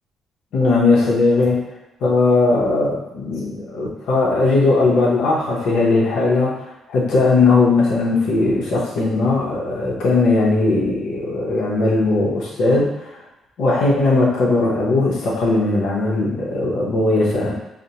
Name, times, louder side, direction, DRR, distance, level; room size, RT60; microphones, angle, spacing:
voice 1, 0.5-1.6 2.0-6.6 6.9-13.2 13.6-17.5, left 3 dB, 80° left, -5 dB, 0.8 m, -18 dB
4.9 x 2.1 x 2.8 m, 0.92 s
cardioid pair, 90°, 0 cm